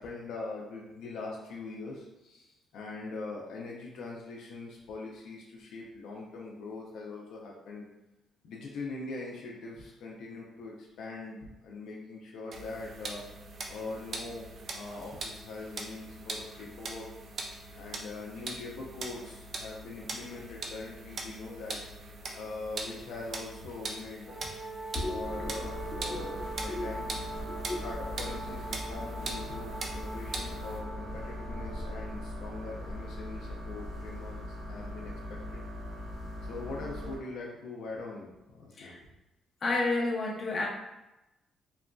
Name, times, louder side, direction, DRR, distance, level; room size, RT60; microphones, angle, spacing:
voice 1, 0.0-7.9 8.4-13.2 13.7-17.1 17.4-21.8 22.3-24.5 25.0-27.1 27.8-35.6 36.5-38.3 38.6-39.0, left 3 dB, 80° left, -3 dB, 0.4 m, -42 dB
sound 1, 12.5-30.8, right 3 dB, 55° right, 0.4 m, -42 dB
Wind instrument woodwind instrument, 24.2-32.2, right 2 dB, 35° right, 0.8 m, -42 dB
voice 2, 24.9-25.5 26.1-26.3 26.7-26.9 27.5-27.8 38.8-39.0 39.6-40.7, left 2 dB, 40° left, -2 dB, 0.6 m, -32 dB
sound 2, 25.2-37.2, left 1 dB, 85° right, 1.3 m, -40 dB
2.9 x 2.4 x 2.2 m, 0.98 s
cardioid pair, 90°, 0 cm